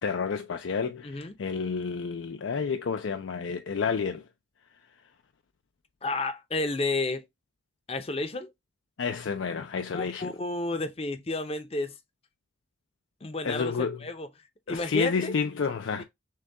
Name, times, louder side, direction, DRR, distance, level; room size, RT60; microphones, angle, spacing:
voice 1, 0.0-4.2 9.0-10.3 13.4-14.0 14.7-16.0, left 5 dB, 85° left, 0.5 m, -30 dB
voice 2, 1.0-1.3 6.0-7.2 7.9-8.5 9.9-12.0 13.2-14.3 14.7-15.3 16.0-16.1, left 2 dB, 30° left, 0.6 m, -31 dB
6.4 x 2.3 x 3.4 m
head